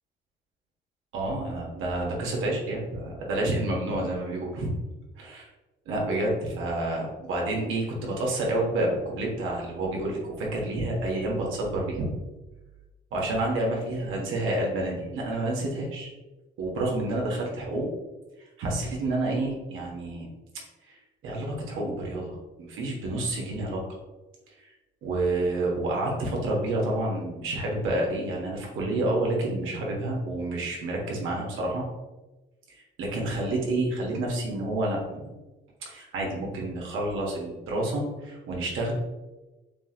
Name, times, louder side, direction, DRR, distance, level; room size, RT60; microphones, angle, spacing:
voice 1, 1.1-4.7 5.2-5.5 5.8-12.1 13.1-16.1 16.6-17.9 18.6-20.3 20.9-21.0 21.2-23.8 25.0-31.8 33.0-35.3 35.8-38.9, right 2 dB, 85° right, -2 dB, 1.3 m, -29 dB
6.9 x 2.4 x 2.9 m, 1.1 s
cardioid pair, 90°, 20 cm